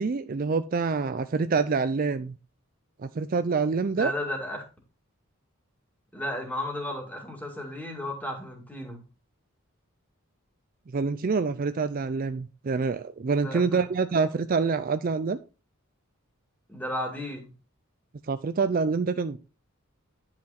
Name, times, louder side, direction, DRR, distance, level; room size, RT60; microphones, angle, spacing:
voice 1, 0.0-2.4 3.0-4.1 10.9-15.4 18.3-19.4, right 4 dB, 40° right, 11 dB, 0.4 m, -26 dB
voice 2, 3.9-4.6 6.1-9.0 13.4-13.8 16.7-17.5, left 1 dB, 10° left, 2 dB, 2.3 m, -34 dB
10.0 x 5.8 x 4.2 m, 0.31 s
head